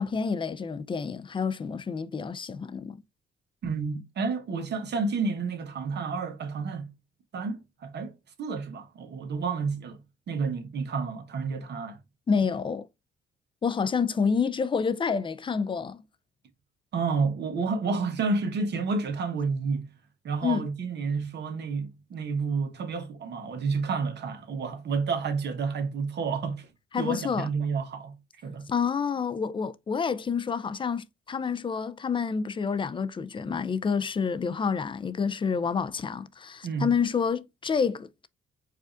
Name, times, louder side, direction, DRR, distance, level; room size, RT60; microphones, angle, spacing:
voice 1, 0.0-3.0 12.3-12.9 13.6-16.0 20.4-20.7 26.9-27.5 28.7-38.3, left 6 dB, 25° left, 0.4 m, -28 dB
voice 2, 3.6-6.9 7.3-8.1 8.4-10.0 10.3-12.0 16.9-19.9 20.2-26.7 27.0-28.1 28.4-28.7 36.6-36.9, right 4 dB, 60° right, 1.0 m, -30 dB
4.8 x 2.4 x 2.5 m
cardioid pair, 90°, 20 cm